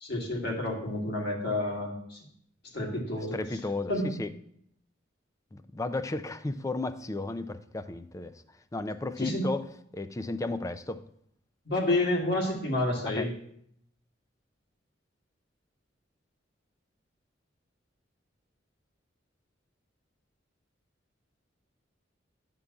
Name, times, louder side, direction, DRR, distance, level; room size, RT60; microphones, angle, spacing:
voice 1, 0.0-2.2 2.7-3.4 3.9-4.1 9.2-9.4 11.7-13.3, left 1 dB, 60° left, -2 dB, 2.0 m, -29 dB
voice 2, 3.3-4.3 5.5-8.3 8.7-9.7 9.9-11.0 13.0-13.3, left 2 dB, 15° left, 11 dB, 0.4 m, -34 dB
11.0 x 3.8 x 7.1 m, 0.71 s
head